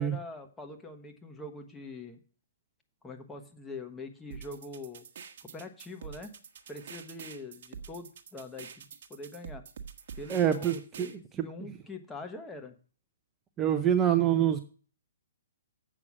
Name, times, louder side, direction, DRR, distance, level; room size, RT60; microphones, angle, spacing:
voice 1, 0.0-2.2 3.0-5.0 5.5-6.3 6.7-8.8 9.1-9.6 10.2-12.7, left 2 dB, 10° left, 4 dB, 1.4 m, -43 dB
sound 1, 4.3-11.1, right 6 dB, 55° right, 1.2 m, -46 dB
voice 2, 10.3-11.5 13.6-14.6, right 10 dB, 20° right, 6 dB, 0.7 m, -26 dB
7.8 x 6.0 x 7.4 m, 0.39 s
hypercardioid pair, 130°, 0 cm